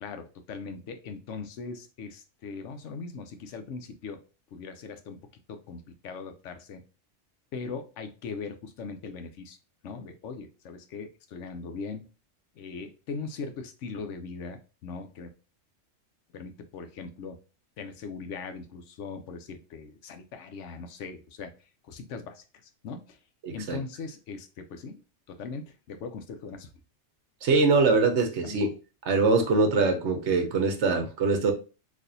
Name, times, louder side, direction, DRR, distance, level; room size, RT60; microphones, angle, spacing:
voice 1, 0.0-4.2 4.5-5.2 5.5-6.8 7.5-9.6 9.8-12.0 12.6-15.3 16.3-17.4 17.8-21.5 21.9-22.4 22.8-23.2 23.5-25.0 25.4-26.7 28.4-28.6, left 4 dB, 85° left, 7 dB, 1.0 m, -40 dB
voice 2, 23.4-23.8 27.4-28.7 29.1-31.5, right 3 dB, 70° right, 5 dB, 1.1 m, -23 dB
4.1 x 2.7 x 2.6 m, 0.33 s
omnidirectional pair, 1.2 m